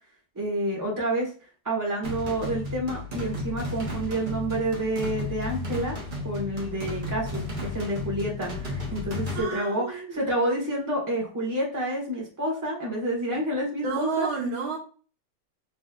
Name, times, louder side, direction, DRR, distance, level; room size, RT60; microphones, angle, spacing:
voice 1, 0.3-1.3 1.6-6.0 6.2-14.3, right 1 dB, 10° right, -3 dB, 1.3 m, -29 dB
sound 1, 2.0-9.4, left 2 dB, 35° right, 0.9 m, -33 dB
voice 2, 9.3-10.2 13.8-14.8, right 4 dB, 70° right, 1 dB, 1.6 m, -30 dB
4.2 x 3.2 x 2.5 m, 0.38 s
omnidirectional pair, 2.3 m